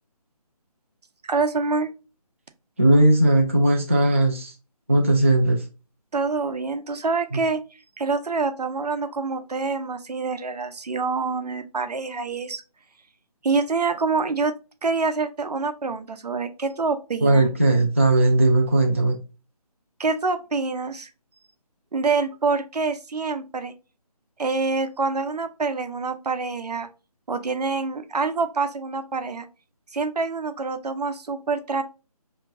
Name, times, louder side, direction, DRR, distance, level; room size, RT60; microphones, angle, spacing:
voice 1, 1.3-1.9 6.1-7.6 8.0-12.6 13.4-14.5 14.8-17.5 20.0-21.1 21.9-23.7 24.4-26.9 27.3-29.5 29.9-31.8, right 4 dB, 85° right, 9 dB, 0.7 m, -26 dB
voice 2, 2.8-4.5 4.9-5.6 17.2-19.2, right 1 dB, 20° right, 0 dB, 0.3 m, -18 dB
4.7 x 2.8 x 2.3 m, 0.32 s
figure-of-eight pair, 165°, 20 cm